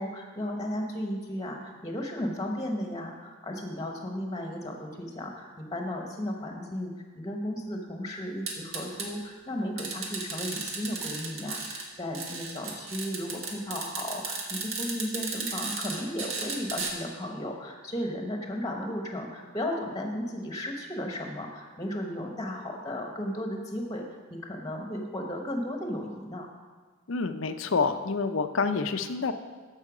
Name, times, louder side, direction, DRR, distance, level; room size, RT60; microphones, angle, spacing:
voice 1, 0.0-24.0 24.3-26.5, left 1 dB, 20° left, 2 dB, 1.1 m, -35 dB
sound 1, 8.5-9.1 9.8-11.8 12.1-16.9, right 4 dB, 70° right, 1.6 m, -34 dB
voice 2, 27.1-29.3, left 4 dB, 70° left, 9 dB, 0.6 m, -28 dB
14.0 x 5.6 x 5.0 m, 1.4 s
head